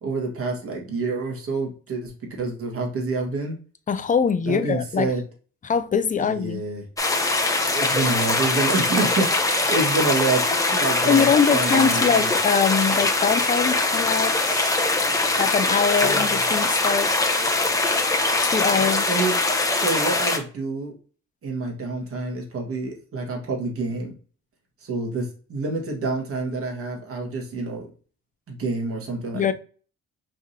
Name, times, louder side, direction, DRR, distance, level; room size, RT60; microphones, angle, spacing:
voice 1, 0.0-2.1 2.4-3.5 4.5-5.2 6.3-6.8 7.7-12.3 16.0-16.4 18.6-19.3 19.7-20.9 21.4-24.1 24.8-27.9 28.5-29.5, right 3 dB, 45° right, 1.6 m, -28 dB
voice 2, 3.9-5.1 5.6-6.6 11.1-14.8 15.4-17.2 18.4-19.0 29.3-29.5, left 6 dB, 25° left, 0.5 m, -23 dB
sound 1, 7.0-20.4, left 2 dB, 10° left, 0.9 m, -22 dB
5.0 x 3.4 x 2.7 m
cardioid pair, 90°, 30 cm